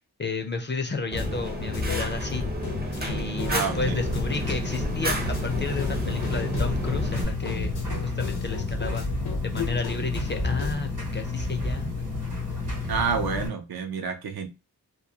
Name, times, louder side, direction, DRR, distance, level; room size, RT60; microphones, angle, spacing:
voice 1, 0.2-2.5 3.0-9.1 9.4-12.1, left 3 dB, 30° left, 0.4 m, -32 dB
sound 1, 1.1-10.7, left 5 dB, 85° left, 0.7 m, -34 dB
Fire, 1.1-7.2, right 1 dB, 25° right, 0.6 m, -31 dB
voice 2, 3.4-4.0 6.1-6.2 12.9-14.5, right 6 dB, 70° right, 0.5 m, -29 dB
sound 2, 3.8-13.5, left 3 dB, 50° right, 1.0 m, -31 dB
2.2 x 2.2 x 2.7 m
wide cardioid pair, 75°, 39 cm